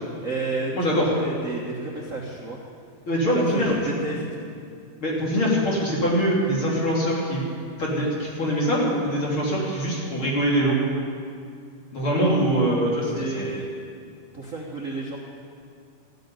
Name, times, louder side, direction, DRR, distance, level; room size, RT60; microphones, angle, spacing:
voice 1, 0.2-0.7 1.1-2.6 3.3-4.4 12.0-12.4 13.1-13.7 14.3-15.2, right 3 dB, 60° right, -2 dB, 0.8 m, -31 dB
voice 2, 0.7-1.1 3.1-3.9 5.0-7.4 7.8-10.8 11.9-13.5, equal, 45° left, -4 dB, 3.6 m, -23 dB
14.0 x 9.4 x 9.6 m, 2.3 s
omnidirectional pair, 3.5 m